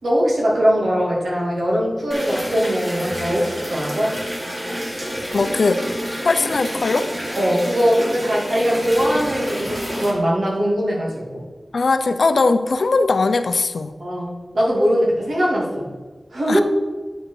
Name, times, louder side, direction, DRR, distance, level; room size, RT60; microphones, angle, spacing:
voice 1, 0.0-4.1 7.4-11.4 14.0-14.3 14.5-15.9 16.3-16.6, equal, 80° right, -4 dB, 2.4 m, -20 dB
sound 1, 2.1-10.1, equal, 30° right, 2.0 m, -28 dB
voice 2, 5.3-5.8 6.2-7.1 11.7-13.9 16.5-16.6, left 3 dB, 75° left, 10 dB, 0.5 m, -19 dB
8.9 x 5.0 x 4.7 m, 1.4 s
wide cardioid pair, 100°, 0 cm